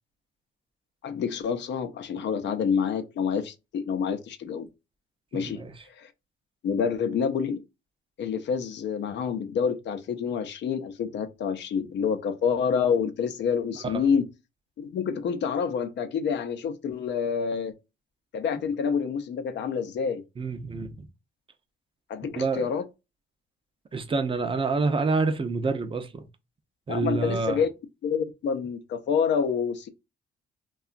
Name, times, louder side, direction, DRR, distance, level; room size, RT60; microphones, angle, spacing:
voice 1, 1.0-4.7 5.3-5.6 6.0-6.1 6.6-7.6 8.2-14.2 14.8-17.7 18.3-20.2 22.1-22.8 26.9-27.7 28.0-29.9, left 6 dB, 65° left, 0.6 m, -27 dB
voice 2, 5.3-5.7 13.8-14.1 20.4-21.1 22.4-22.7 23.9-26.3 26.9-27.6, right 4 dB, 25° right, 0.5 m, -27 dB
2.8 x 2.3 x 2.4 m
cardioid pair, 90°, 20 cm